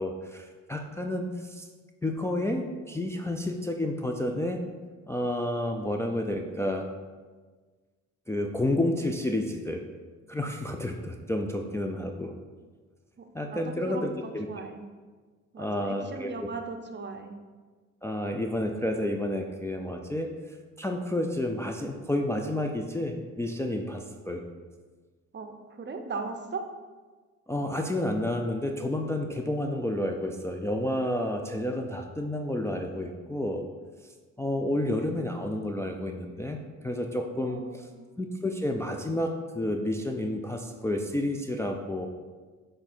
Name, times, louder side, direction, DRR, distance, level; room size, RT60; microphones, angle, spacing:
voice 1, 0.0-1.6 2.0-4.6 5.1-6.9 8.3-9.8 10.3-12.3 13.3-14.5 15.6-16.3 18.0-20.3 20.8-24.4 27.5-33.6 34.4-37.9 38.2-42.1, left 1 dB, 10° left, 2 dB, 0.4 m, -30 dB
voice 2, 13.2-14.9 15.5-17.4 25.3-26.6 34.6-35.3 37.3-38.1, right 4 dB, 35° right, 6 dB, 0.7 m, -39 dB
7.1 x 3.8 x 4.3 m, 1.4 s
cardioid pair, 90°, 30 cm